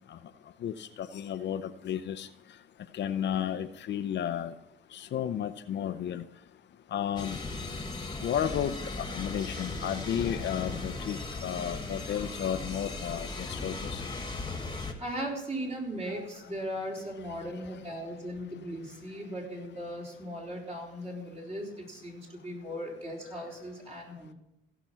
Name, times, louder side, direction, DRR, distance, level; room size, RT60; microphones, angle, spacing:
voice 1, 0.6-2.3 2.9-4.5 4.9-6.2 6.9-7.4 8.2-14.0 16.1-16.3, left 9 dB, 60° left, 11 dB, 0.6 m, -33 dB
sound 1, 7.2-14.9, left 3 dB, 20° left, 1.6 m, -37 dB
voice 2, 15.0-24.3, equal, 30° right, -3 dB, 3.9 m, -38 dB
16.0 x 6.0 x 5.6 m, 0.86 s
cardioid pair, 90°, 20 cm